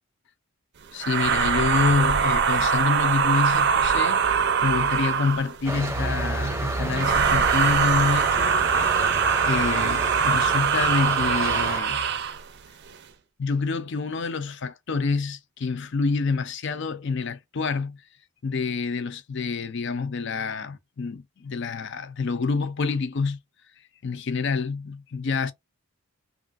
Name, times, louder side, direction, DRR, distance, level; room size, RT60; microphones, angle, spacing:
voice 1, 0.9-8.5 9.4-12.0 13.4-18.0 18.4-23.4 24.0-25.5, left 4 dB, 55° left, 0.5 m, -27 dB
sound 1, 1.0-5.6 6.9-12.4, right 6 dB, 50° right, 0.4 m, -22 dB
sound 2, 5.7-11.8, right 2 dB, 10° right, 0.7 m, -31 dB
3.1 x 2.5 x 2.5 m
head